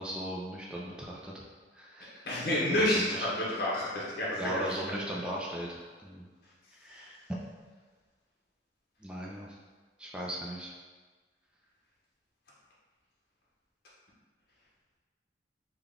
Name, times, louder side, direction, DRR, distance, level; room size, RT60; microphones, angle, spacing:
voice 1, 0.0-1.4 1.7-2.3 2.7-3.3 4.4-6.3 6.8-7.2 9.0-9.6 10.0-10.7, equal, 5° right, -3 dB, 0.3 m, -38 dB
voice 2, 2.3-4.7, left 1 dB, 55° left, -6 dB, 0.9 m, -29 dB
3.7 x 2.3 x 3.6 m, 1.4 s
head